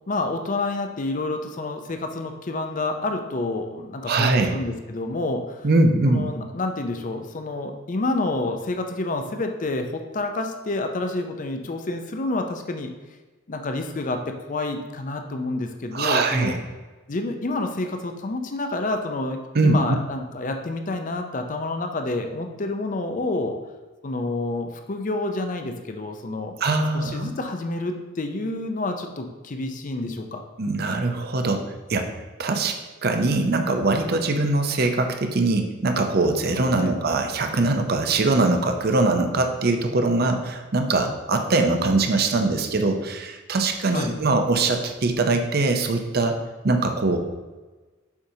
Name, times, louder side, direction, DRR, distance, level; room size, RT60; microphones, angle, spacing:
voice 1, 0.1-5.7 6.1-12.9 13.5-14.2 14.5-16.6 17.1-19.4 19.6-23.6 24.0-26.6 26.9-30.4 36.8-36.9 43.9-44.1, left 2 dB, 40° left, 5 dB, 0.5 m, -28 dB
voice 2, 4.1-4.5 5.6-6.3 15.9-16.5 19.5-19.8 26.6-27.3 30.6-31.6 31.9-32.1 32.4-32.7 33.0-46.3 46.6-47.2, right 2 dB, 50° right, 5 dB, 0.6 m, -22 dB
7.1 x 5.0 x 2.8 m, 1.2 s
head